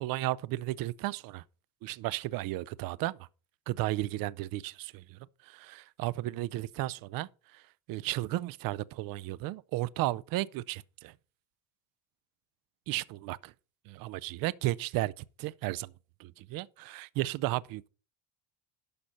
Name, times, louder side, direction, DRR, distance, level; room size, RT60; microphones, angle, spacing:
voice 1, 0.0-1.4 1.8-3.3 3.7-11.1 12.9-13.5 13.9-15.9 16.2-17.9, right 17 dB, 50° right, 0.5 m, -34 dB
12.0 x 4.2 x 6.4 m
cardioid pair, 140°, 44 cm